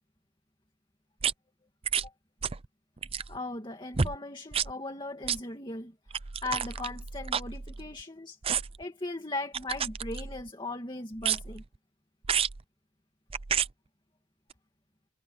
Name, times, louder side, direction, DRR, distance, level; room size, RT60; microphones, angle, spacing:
sound 1, 1.2-1.3 1.8-2.1 2.4-2.7 3.0-3.4 3.9-4.2 4.5-4.7 5.2-5.4 6.1-8.0 8.4-8.8 9.5-10.5 11.2-11.6 12.2-12.6 13.3-13.7 14.5-14.6, right 7 dB, 30° right, 0.5 m, -31 dB
voice 1, 3.3-5.9 6.4-8.4 8.8-11.6, left 2 dB, 25° left, 2.2 m, -38 dB
head